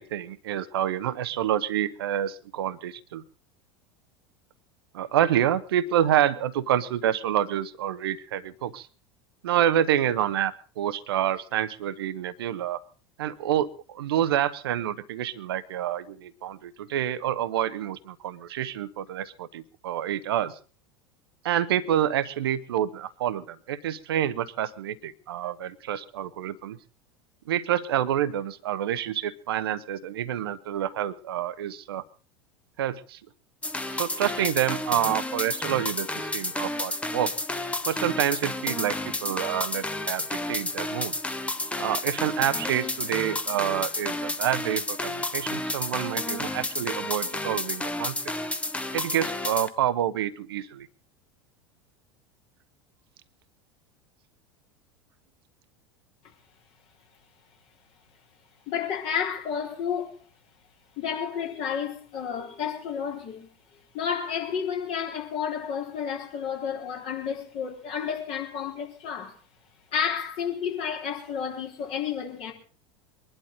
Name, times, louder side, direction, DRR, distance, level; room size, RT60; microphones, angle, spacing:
voice 1, 0.0-3.2 4.9-8.9 9.4-12.8 13.2-20.6 21.4-26.8 27.5-32.0 32.8-33.2 33.9-37.3 37.9-39.0 39.2-41.1 41.8-48.2 48.9-50.9, right 11 dB, 65° right, 0.8 m, -28 dB
sound 1, 33.6-49.7, left 2 dB, 10° left, 1.0 m, -31 dB
voice 2, 58.7-60.2 61.0-63.5 63.9-69.3 69.9-72.5, left 7 dB, 50° left, 3.8 m, -31 dB
23.0 x 11.5 x 3.9 m
figure-of-eight pair, 80°, 13 cm